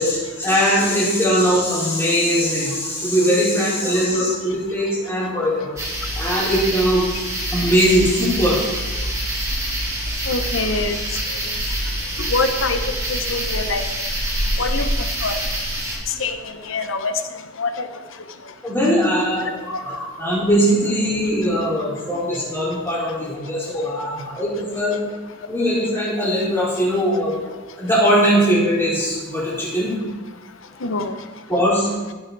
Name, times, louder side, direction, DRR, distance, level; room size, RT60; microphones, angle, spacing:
voice 1, 0.0-5.7 6.2-7.0 7.5-8.7 18.6-25.0 25.5-29.9 31.5-31.9, equal, 10° left, -8 dB, 4.6 m, -20 dB
sound 1, 5.8-16.0, right 1 dB, 15° right, 2.2 m, -25 dB
voice 2, 10.3-11.0 11.3-11.4 12.2-12.8 13.1-13.8 14.6-14.9 15.2-15.4 16.1-17.2 17.6-17.9 30.8-31.1, left 3 dB, 65° left, 8 dB, 1.0 m, -24 dB
17.0 x 8.1 x 4.1 m, 1.3 s
head